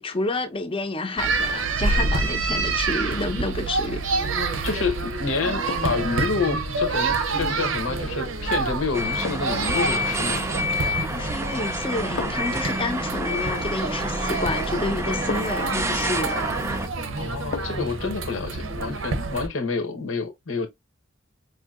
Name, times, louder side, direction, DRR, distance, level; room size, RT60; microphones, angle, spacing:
voice 1, 0.0-4.0 10.9-16.3, left 2 dB, 30° left, 0.7 m, -29 dB
sound 1, 1.2-19.5, right 3 dB, 80° right, 0.7 m, -28 dB
sound 2, 4.2-4.4 5.7-6.1 8.2-8.4 9.2-9.7 11.0-11.4 12.2-12.6 14.3-14.4 15.3-15.7 17.5-18.0 18.3-18.4, left 5 dB, 60° left, 0.4 m, -36 dB
voice 2, 4.6-10.5 17.2-20.7, left 4 dB, 80° left, 0.9 m, -28 dB
sound 3, 8.9-16.9, equal, 15° right, 0.5 m, -28 dB
4.8 x 2.7 x 2.4 m
head